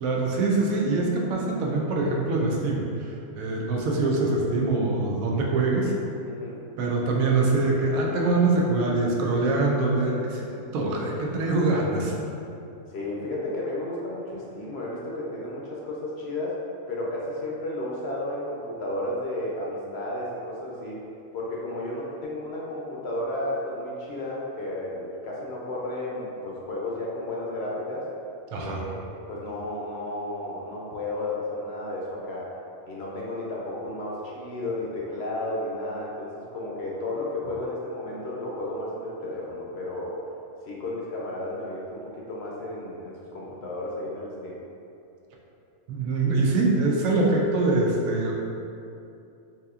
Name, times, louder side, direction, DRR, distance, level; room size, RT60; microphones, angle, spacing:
voice 1, 0.0-5.9 6.8-10.4 10.7-12.1 28.5-28.8 45.9-48.3, right 3 dB, 85° right, -1 dB, 1.0 m, -24 dB
voice 2, 6.3-6.6 12.9-16.6 16.9-21.0 21.3-28.0 28.5-32.5 32.8-40.2 40.7-44.6, left 1 dB, 65° left, -4 dB, 0.7 m, -33 dB
4.0 x 2.8 x 2.3 m, 2.7 s
omnidirectional pair, 1.4 m